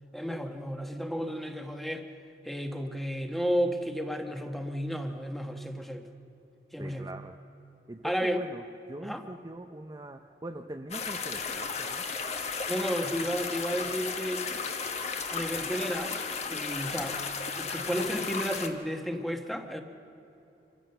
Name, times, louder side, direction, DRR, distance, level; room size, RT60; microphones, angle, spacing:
voice 1, 0.1-2.0 2.4-6.1 6.7-7.1 8.0-8.4 9.0-9.2 12.7-14.4 15.3-16.2 16.5-17.3 17.5-19.8, equal, ahead, 5 dB, 1.2 m, -32 dB
voice 2, 6.8-7.3 7.9-8.6 8.9-12.0, right 1 dB, 20° right, 4 dB, 0.6 m, -42 dB
sound 1, 10.9-18.7, left 5 dB, 40° left, 1.3 m, -34 dB
26.0 x 15.5 x 6.7 m, 3.0 s
head